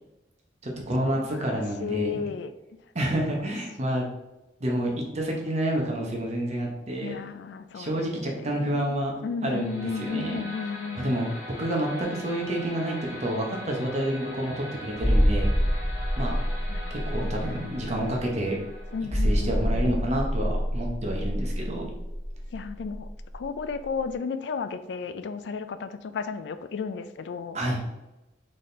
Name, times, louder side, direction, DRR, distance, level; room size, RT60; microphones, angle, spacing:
voice 1, 0.6-2.2 2.9-4.1 4.6-7.2 7.7-9.1 9.4-10.4 10.9-11.3 11.6-15.5 16.2-16.3 16.9-18.6 19.2-21.9 27.5-27.8, right 1 dB, 40° right, 0 dB, 0.9 m, -29 dB
voice 2, 1.1-2.5 7.0-8.9 9.2-11.2 16.7-17.9 18.9-20.0 22.5-23.1 23.3-27.6, left 5 dB, 75° left, 11 dB, 0.3 m, -34 dB
sound 1, 9.4-20.5, left 1 dB, 50° left, 1.5 m, -42 dB
sound 2, 15.0-23.4 23.7-23.8, equal, 5° left, 0.4 m, -26 dB
4.0 x 3.8 x 3.3 m, 1.0 s
head